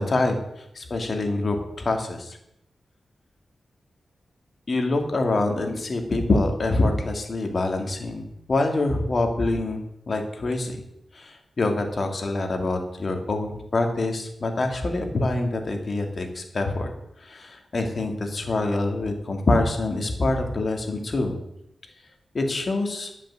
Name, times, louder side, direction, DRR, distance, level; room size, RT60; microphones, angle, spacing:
voice 1, 0.0-2.4 4.7-10.8 11.1-16.9 17.2-21.3 22.3-23.1, left 2 dB, 50° left, 4 dB, 2.5 m, -25 dB
12.0 x 7.5 x 7.7 m, 0.79 s
wide cardioid pair, 80°, 0 cm